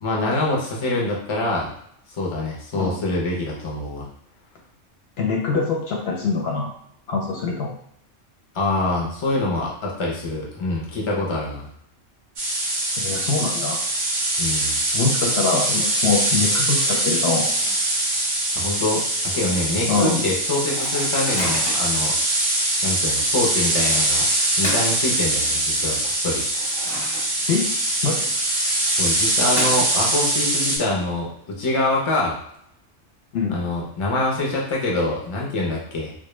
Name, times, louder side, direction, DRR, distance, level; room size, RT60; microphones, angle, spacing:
voice 1, 0.0-1.7 2.2-4.1 8.5-11.7 14.4-14.8 18.5-22.1 22.8-24.3 24.6-26.4 28.9-32.4 33.5-36.1, left 2 dB, 45° left, -3 dB, 0.4 m, -25 dB
voice 2, 5.2-6.7 7.1-7.7 13.0-13.8 14.9-17.5 19.9-20.2 27.5-27.7 28.0-28.3 33.3-33.6, left 4 dB, 65° left, -1 dB, 0.7 m, -23 dB
sound 1, 12.4-30.8, right 1 dB, 50° right, 0.6 m, -22 dB
Microwave oven, 13.9-14.2 14.5-14.6 14.9-18.0 18.5-18.6 18.8-19.1 19.6-19.7 20.5-22.0 22.6-22.8 23.9-25.7 26.2-27.7 27.9-28.0 28.9-30.3, left 1 dB, 30° left, 0.8 m, -36 dB
2.1 x 2.1 x 3.0 m, 0.70 s
omnidirectional pair, 1.3 m